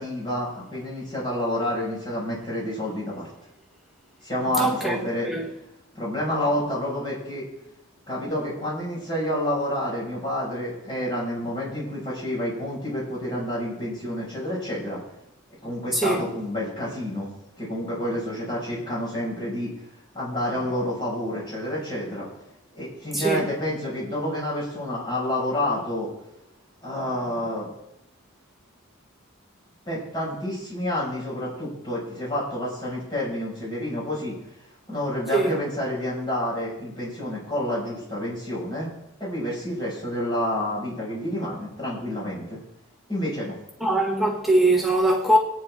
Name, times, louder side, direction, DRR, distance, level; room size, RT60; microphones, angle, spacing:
voice 1, 0.0-3.3 4.2-5.3 5.9-7.4 8.1-15.0 15.6-17.3 17.6-19.7 20.1-22.3 22.7-26.1 26.8-27.7 29.9-34.3 34.9-38.9 39.2-42.6 43.1-43.6, left 1 dB, 20° left, 5.9 m, -29 dB
voice 2, 4.6-4.9 5.3-5.5 15.9-16.3 23.1-23.4 35.3-35.6 43.8-45.4, right 1 dB, ahead, 1.3 m, -21 dB
24.5 x 9.5 x 3.7 m
head